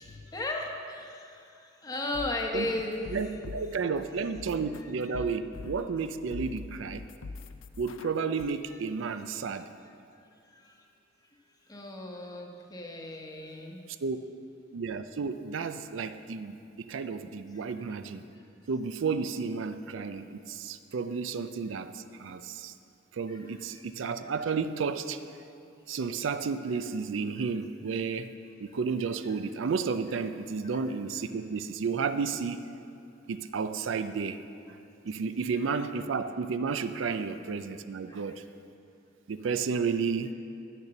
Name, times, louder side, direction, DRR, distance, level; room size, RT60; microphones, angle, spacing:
voice 1, 0.0-3.2 4.3-4.4 4.8-5.2 10.5-10.8 11.7-13.8 18.3-18.4 23.3-23.4 23.7-23.8 30.7-30.8 38.1-38.2, left 2 dB, 20° left, 1 dB, 1.0 m, -36 dB
sound 1, 1.9-3.9 4.3-6.1 6.3-8.4, left 3 dB, 85° left, 0.5 m, -43 dB
voice 2, 3.1-7.0 7.8-9.7 14.0-14.2 14.7-18.2 18.7-22.7 23.1-25.2 25.9-28.3 28.6-32.6 33.3-34.4 34.7-34.8 35.0-38.4 39.3-40.3, right 5 dB, 75° right, 10 dB, 0.4 m, -32 dB
10.0 x 6.8 x 6.9 m, 2.5 s
head